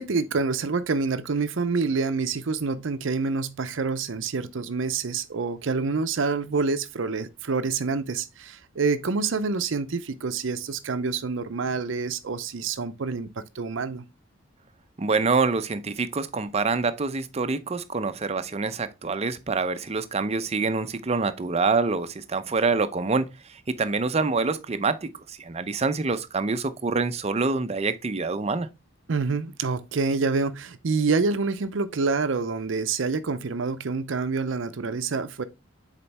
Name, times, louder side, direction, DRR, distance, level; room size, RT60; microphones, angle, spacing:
voice 1, 0.0-14.0 29.1-35.4, right 4 dB, 70° right, 0.6 m, -27 dB
voice 2, 15.0-28.7, right 4 dB, 30° right, 0.5 m, -26 dB
7.0 x 4.4 x 3.3 m
head